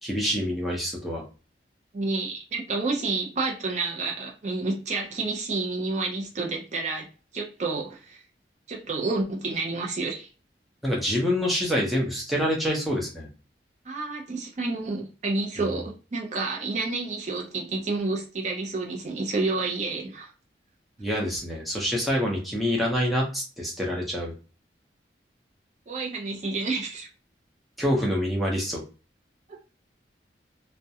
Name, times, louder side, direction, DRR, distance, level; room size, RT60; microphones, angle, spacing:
voice 1, 0.0-1.2 10.8-13.3 21.0-24.3 27.8-28.8, equal, ahead, 0.6 m, -26 dB
voice 2, 1.9-7.1 7.3-8.2 8.7-10.3 13.9-20.3 25.9-27.1 29.5-29.6, right 3 dB, 40° right, 0.5 m, -29 dB
2.3 x 2.1 x 2.7 m
head